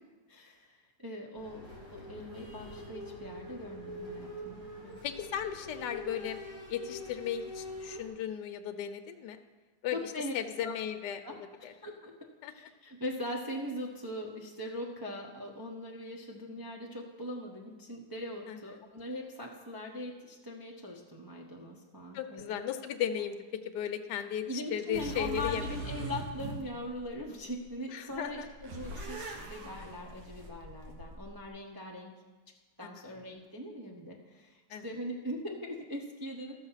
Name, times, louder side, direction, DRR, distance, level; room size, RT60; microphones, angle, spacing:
voice 1, 0.3-1.7 1.9-4.7 9.9-10.7 11.2-11.4 11.8-12.1 12.5-22.6 24.5-32.1 32.8-36.7, equal, 20° right, -1 dB, 0.6 m, -41 dB
sound 1, 1.4-8.1, left 1 dB, 85° right, 2.9 m, -44 dB
voice 2, 4.8-6.4 6.7-9.4 9.8-11.2 11.6-11.7 12.4-12.5 18.5-18.6 22.1-23.4 23.7-24.4 24.7-25.7 27.9-28.5 32.8-33.0 34.7-34.8, left 9 dB, 75° left, 6 dB, 1.2 m, -36 dB
sound 2, 24.9-27.7 28.1-31.5, right 1 dB, 65° right, 1.7 m, -42 dB
13.5 x 6.3 x 5.6 m, 1.3 s
omnidirectional pair, 1.9 m